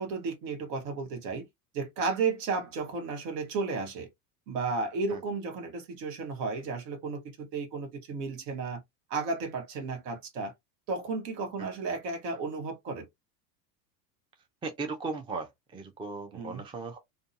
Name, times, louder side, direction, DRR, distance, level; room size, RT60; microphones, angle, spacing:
voice 1, 0.0-1.5 1.7-4.1 4.5-8.8 9.1-10.5 10.9-13.1 16.3-16.6, right 4 dB, 65° right, 1.2 m, -33 dB
voice 2, 14.6-17.0, right 4 dB, 10° right, 0.5 m, -37 dB
2.5 x 2.3 x 2.5 m
hypercardioid pair, 90°, 50 cm